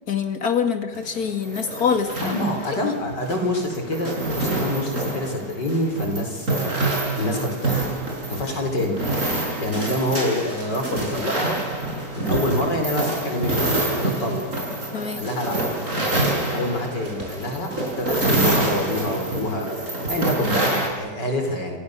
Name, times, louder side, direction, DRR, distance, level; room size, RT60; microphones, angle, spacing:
voice 1, 0.1-2.4 14.9-15.3, left 6 dB, 60° left, 7 dB, 2.7 m, -25 dB
sound 1, 0.9-20.9, right 2 dB, 45° right, 6.1 m, -26 dB
voice 2, 2.2-7.9 8.3-9.0 9.3-11.6 12.1-14.5 15.2-15.6 16.3-19.7 20.1-21.8, left 1 dB, 85° left, 3 dB, 5.1 m, -27 dB
28.5 x 28.0 x 6.7 m, 1.3 s
omnidirectional pair, 1.8 m